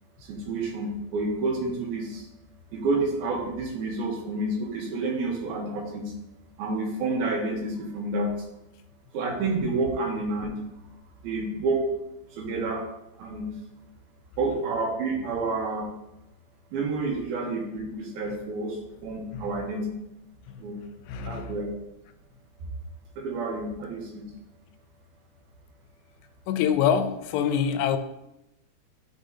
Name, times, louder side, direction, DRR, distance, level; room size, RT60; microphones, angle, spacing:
voice 1, 0.3-2.2 2.7-6.1 6.6-8.3 9.1-10.5 11.2-11.9 12.4-12.8 13.2-13.5 14.4-15.9 16.7-18.8 19.0-19.8 20.6-20.7 21.2-21.7 23.2-24.2, right 3 dB, 75° right, 0 dB, 2.6 m, -29 dB
voice 2, 21.1-21.6 26.5-28.0, left 8 dB, 85° left, 8 dB, 2.7 m, -25 dB
11.0 x 4.9 x 2.7 m, 0.87 s
omnidirectional pair, 4.8 m